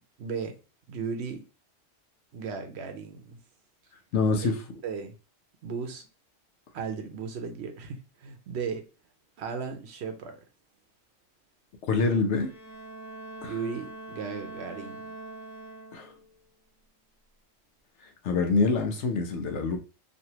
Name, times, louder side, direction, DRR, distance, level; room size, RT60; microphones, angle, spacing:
voice 1, 0.2-0.6 0.9-1.4 2.3-3.4 4.4-4.5 4.8-5.1 5.6-6.1 6.7-8.9 9.4-10.4 13.4-15.1, right 5 dB, 65° right, 0.8 m, -36 dB
voice 2, 4.1-4.5 11.9-12.5 13.4-13.5 15.9-16.1 18.2-19.8, left 4 dB, 70° left, 1.0 m, -25 dB
Bowed string instrument, 12.2-16.3, right 2 dB, 10° right, 1.3 m, -43 dB
3.1 x 2.6 x 2.8 m
omnidirectional pair, 1.3 m